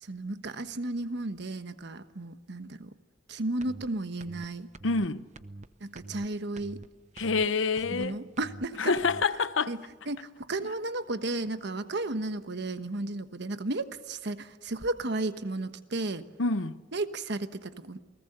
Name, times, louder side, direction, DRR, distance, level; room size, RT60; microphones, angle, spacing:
voice 1, 0.0-2.9 3.3-4.7 5.8-6.8 7.9-8.9 9.7-9.8 10.1-16.2 16.9-18.0, right 2 dB, 65° right, 1.2 m, -34 dB
sound 1, 3.6-3.9 4.2-4.5 4.7-5.1 5.4-5.7 6.0-6.3 6.6-6.9 7.2-7.5 7.8-8.1 8.4-8.7 9.0-9.3, right 2 dB, 40° right, 0.8 m, -45 dB
voice 2, 4.8-5.3 7.2-8.2 8.8-9.7 16.4-16.8, left 4 dB, 85° left, 0.8 m, -27 dB
29.0 x 19.0 x 6.7 m
head